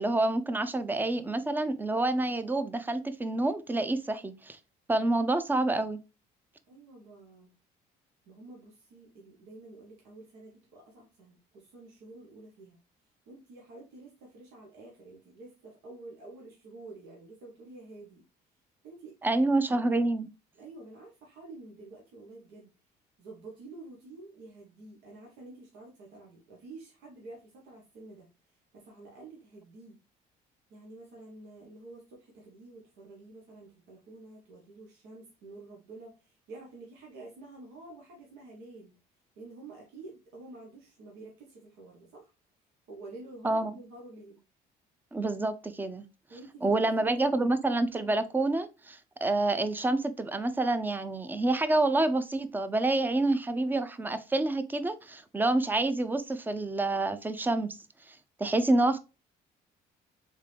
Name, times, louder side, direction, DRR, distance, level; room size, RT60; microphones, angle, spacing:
voice 1, 0.0-4.6 4.9-6.0 19.2-20.3 43.4-43.7 45.1-46.1 46.6-57.8 58.1-59.0, right 2 dB, 10° right, 0.5 m, -28 dB
voice 2, 6.7-7.5 8.3-12.8 13.3-18.2 18.8-19.8 20.6-22.7 23.2-28.3 28.7-30.0 30.7-38.9 39.4-42.3 42.9-44.4 46.3-47.5, right 2 dB, 90° right, 1.4 m, -49 dB
3.7 x 3.7 x 3.3 m
cardioid pair, 110°, 17 cm